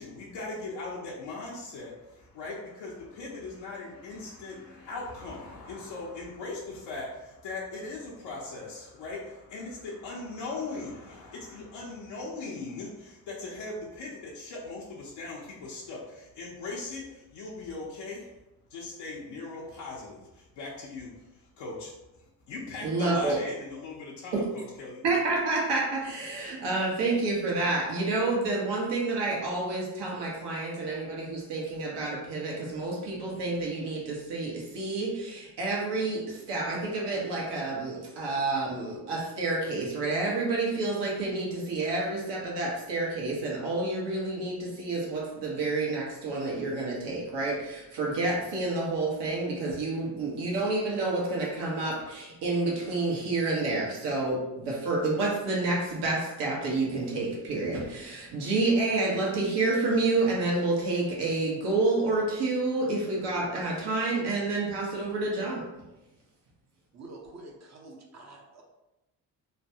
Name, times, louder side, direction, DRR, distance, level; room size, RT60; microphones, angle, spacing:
voice 1, 0.0-18.3 18.7-25.0, left 3 dB, 80° left, -5 dB, 0.7 m, -39 dB
voice 2, 22.8-23.4 24.3-24.4 25.0-65.6, right 2 dB, 70° right, -3 dB, 1.2 m, -29 dB
voice 3, 66.9-68.6, right 2 dB, 40° right, -1 dB, 0.7 m, -47 dB
3.2 x 2.2 x 2.7 m, 0.99 s
supercardioid pair, 60°, 43 cm